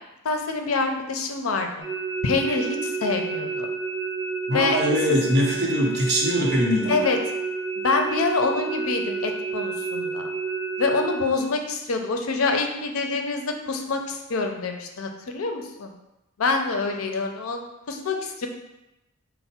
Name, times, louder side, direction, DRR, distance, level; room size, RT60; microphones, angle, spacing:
voice 1, 0.2-1.9 2.2-3.7 4.5-4.8 5.1-5.2 6.9-7.2 7.8-10.3 10.8-15.9 16.4-18.5, left 3 dB, 85° left, 4 dB, 0.5 m, -26 dB
sound 1, 1.8-11.2, right 4 dB, 10° right, 1.0 m, -30 dB
voice 2, 4.5-7.0, equal, 55° right, -2 dB, 0.9 m, -22 dB
4.3 x 2.1 x 4.2 m, 0.93 s
head